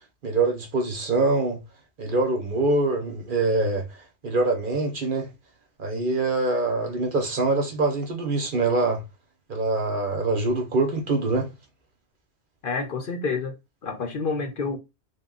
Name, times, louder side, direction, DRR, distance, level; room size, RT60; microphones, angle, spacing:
voice 1, 0.2-1.6 2.0-3.8 4.2-5.3 5.8-9.0 9.5-11.5, right 3 dB, 50° right, 1.0 m, -24 dB
voice 2, 12.6-13.5 13.8-14.8, left 4 dB, 55° left, 0.8 m, -28 dB
3.6 x 2.3 x 3.8 m
omnidirectional pair, 1.1 m